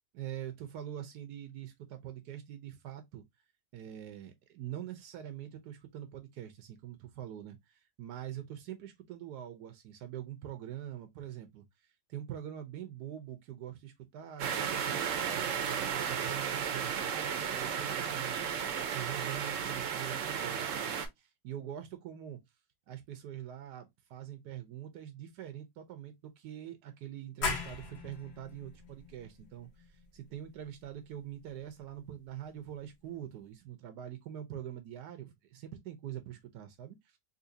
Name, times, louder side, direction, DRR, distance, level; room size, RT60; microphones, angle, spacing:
voice 1, 0.1-3.2 3.7-15.5 16.0-22.4 22.9-37.2, right 11 dB, 85° right, 1.3 m, -44 dB
sound 1, 14.4-21.1, right 7 dB, 65° right, 0.9 m, -34 dB
sound 2, 27.4-32.8, left 4 dB, 50° left, 1.0 m, -41 dB
3.9 x 2.8 x 2.6 m
omnidirectional pair, 1.7 m